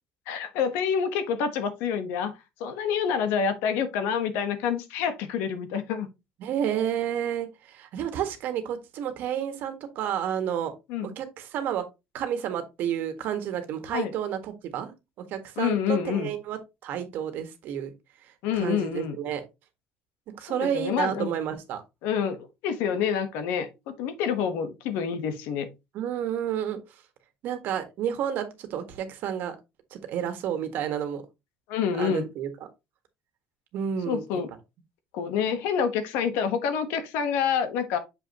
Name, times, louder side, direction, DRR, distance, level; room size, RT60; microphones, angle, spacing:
voice 1, 0.3-2.3 2.6-6.1 10.9-11.1 13.9-14.1 15.6-16.3 18.4-19.2 20.5-21.3 22.0-22.4 22.6-25.7 31.7-32.3 34.1-34.5 35.1-38.0, left 7 dB, 90° left, 1.2 m, -27 dB
voice 2, 6.4-10.7 11.0-11.8 12.1-14.9 15.3-17.9 18.6-19.4 20.3-21.8 25.9-26.8 27.4-29.5 29.9-31.2 32.0-32.5 33.7-34.4, right 9 dB, 65° right, 1.5 m, -30 dB
7.0 x 5.4 x 2.9 m
cardioid pair, 130°, 4 cm